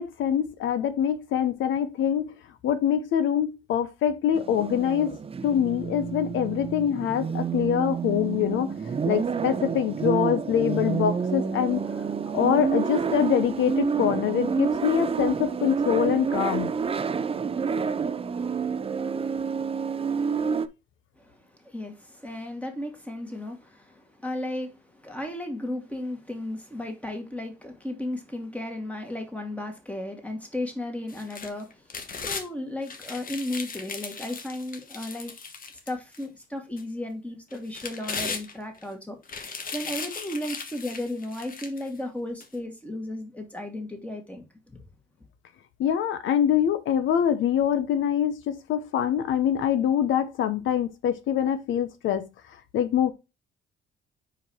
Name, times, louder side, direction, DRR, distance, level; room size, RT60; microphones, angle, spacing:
voice 1, 0.0-2.3 2.6-5.2 5.4-8.7 9.0-11.8 12.3-16.7 45.8-52.3 52.7-53.1, left 9 dB, 80° left, 0.8 m, -24 dB
sound 1, 4.3-20.7, right 6 dB, 30° right, 0.5 m, -28 dB
voice 2, 21.6-31.8 32.2-35.3 35.9-39.2 39.7-44.8, left 1 dB, 5° left, 2.2 m, -34 dB
sound 2, 31.1-32.5 32.9-36.2 36.8-36.9 37.5-38.8 39.2-41.9 42.4-42.5, left 5 dB, 45° left, 1.3 m, -37 dB
5.1 x 4.6 x 4.4 m
cardioid pair, 90°, 20 cm